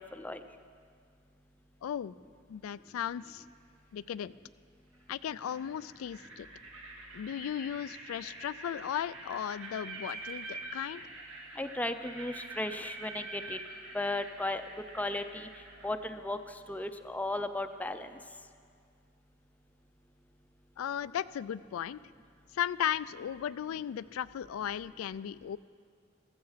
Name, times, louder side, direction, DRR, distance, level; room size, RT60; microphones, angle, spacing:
voice 1, 1.8-2.2 2.5-3.4 3.9-4.4 5.1-6.5 7.1-11.0 20.8-22.0 22.5-25.6, left 9 dB, 90° left, 16 dB, 0.3 m, -36 dB
sound 1, 3.0-3.4 4.9-5.0 5.4-15.9, right 2 dB, 75° right, 2.2 m, -46 dB
voice 2, 11.6-13.6 13.9-14.6 14.9-15.5 15.8-16.4 16.7-18.1, left 2 dB, 10° left, 8 dB, 0.5 m, -35 dB
15.0 x 14.0 x 5.7 m, 2.1 s
head